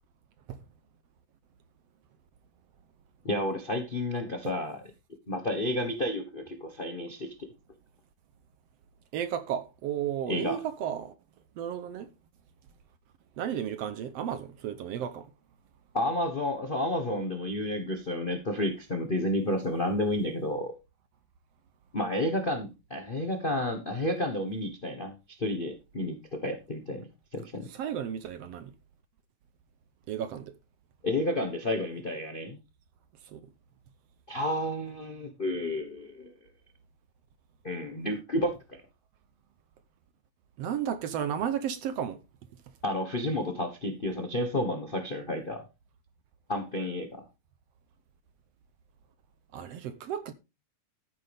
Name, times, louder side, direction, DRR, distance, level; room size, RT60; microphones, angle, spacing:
voice 1, 3.2-4.8 5.3-7.5 10.3-10.6 15.9-20.7 21.9-27.7 31.0-32.6 34.3-36.3 37.6-38.8 42.8-45.6 46.5-47.2, left 1 dB, 65° left, 0.5 m, -31 dB
voice 2, 9.1-11.1 11.6-12.1 13.4-15.3 27.7-28.7 30.1-30.6 33.2-33.4 40.6-42.2 49.5-50.3, right 9 dB, 70° right, 1.7 m, -33 dB
13.5 x 9.4 x 3.5 m
omnidirectional pair, 3.3 m